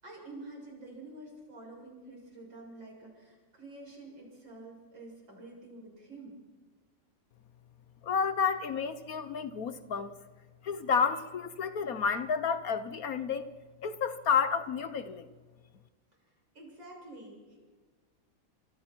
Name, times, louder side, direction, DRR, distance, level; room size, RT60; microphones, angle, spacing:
voice 1, 0.0-6.4 16.5-17.6, right 2 dB, 90° right, 7.9 m, -48 dB
voice 2, 8.0-10.1 10.6-13.5 13.8-15.3, left 6 dB, 60° left, 1.2 m, -30 dB
29.0 x 26.5 x 4.5 m
omnidirectional pair, 2.0 m